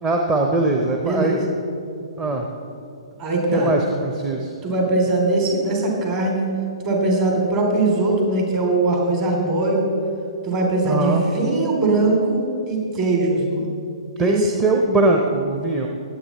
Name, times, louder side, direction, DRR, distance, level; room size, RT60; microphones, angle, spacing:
voice 1, 0.0-1.4 2.2-2.5 3.5-4.5 10.8-11.2 14.2-15.9, right 2 dB, 20° right, 2 dB, 0.8 m, -21 dB
voice 2, 1.0-1.4 3.2-3.7 4.6-6.5 6.8-9.9 10.4-13.7 14.2-14.5, right 2 dB, 35° right, 0 dB, 3.1 m, -21 dB
19.0 x 8.3 x 4.2 m, 2.6 s
figure-of-eight pair, 120°, 3 cm